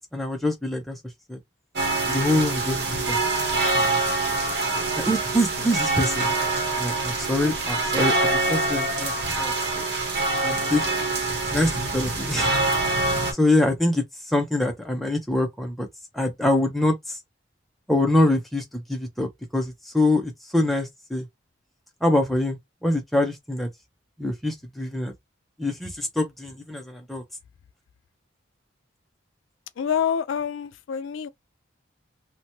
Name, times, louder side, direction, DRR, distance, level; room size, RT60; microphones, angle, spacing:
voice 1, 0.1-1.0 1.3-1.4 2.1-3.2 3.7-4.0 5.0-6.3 6.8-9.8 10.4-10.8 11.5-12.5 13.3-15.9 16.1-17.2 17.9-19.3 19.5-21.3 22.0-23.7 24.2-25.1 25.6-27.2, left 1 dB, ahead, 0.5 m, -25 dB
sound 1, 1.8-13.3, right 2 dB, 55° right, 1.0 m, -25 dB
voice 2, 29.8-31.3, left 7 dB, 80° left, 0.4 m, -27 dB
2.8 x 2.2 x 2.7 m
head